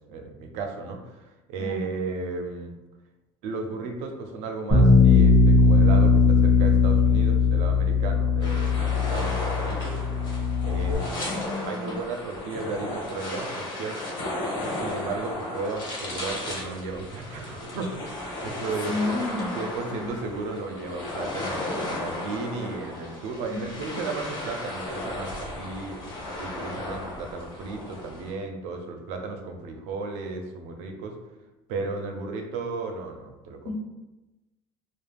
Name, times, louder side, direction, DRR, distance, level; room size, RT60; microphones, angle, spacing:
voice 1, 0.0-2.7 3.4-10.0 10.6-14.2 14.8-19.1 19.5-26.0 26.4-31.2 31.7-33.7, right 3 dB, 70° right, 3 dB, 0.5 m, -34 dB
voice 2, 1.6-1.9 11.3-12.0 18.9-19.6 19.9-20.1 23.5-23.6 33.6-33.7, left 2 dB, 80° left, -2 dB, 0.7 m, -31 dB
Bass guitar, 4.7-10.9, left 4 dB, 15° left, 0.6 m, -19 dB
sound 1, 8.4-28.3, left 1 dB, 40° left, 0.9 m, -35 dB
2.3 x 2.0 x 3.3 m, 1.0 s
cardioid pair, 150°, 12 cm